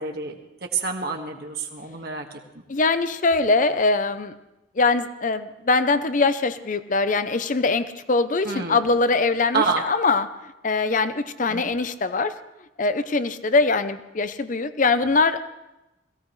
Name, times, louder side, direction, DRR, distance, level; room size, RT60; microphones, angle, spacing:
voice 1, 0.0-2.4 8.4-8.9 9.5-9.9 11.5-11.7, right 4 dB, 55° right, 2 dB, 1.7 m, -28 dB
voice 2, 2.7-4.3 4.8-12.3 12.8-15.4, left 3 dB, 45° left, 12 dB, 0.7 m, -22 dB
21.5 x 16.0 x 3.2 m, 0.97 s
head